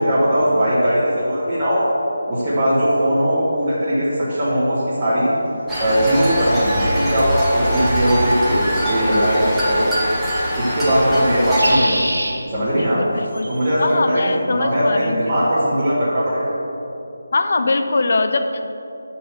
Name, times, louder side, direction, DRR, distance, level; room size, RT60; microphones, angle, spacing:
voice 1, 0.0-1.8 2.3-5.3 5.8-10.1 10.5-12.0 12.5-13.0 13.5-16.6, equal, 20° right, -13 dB, 1.6 m, -19 dB
sound 1, 5.7-11.8, equal, ahead, 1.0 m, -22 dB
sound 2, 6.6-6.7 9.2-9.6 11.3-12.3 13.3-13.7, right 1 dB, 75° right, 1.2 m, -26 dB
voice 2, 12.8-13.5 13.8-15.2 17.3-18.6, left 3 dB, 45° left, 7 dB, 0.5 m, -21 dB
6.6 x 4.3 x 6.6 m, 2.8 s
figure-of-eight pair, 155°, 0 cm